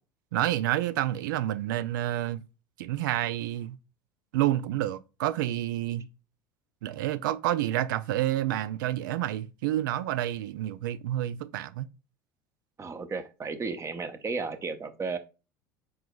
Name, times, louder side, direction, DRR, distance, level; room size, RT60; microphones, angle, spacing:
voice 1, 0.3-2.4 2.8-3.8 4.3-6.1 6.8-11.9, right 13 dB, 85° right, 0.4 m, -29 dB
voice 2, 12.8-15.2, right 4 dB, 25° right, 0.8 m, -34 dB
4.7 x 3.9 x 2.3 m
hypercardioid pair, 85°, 11 cm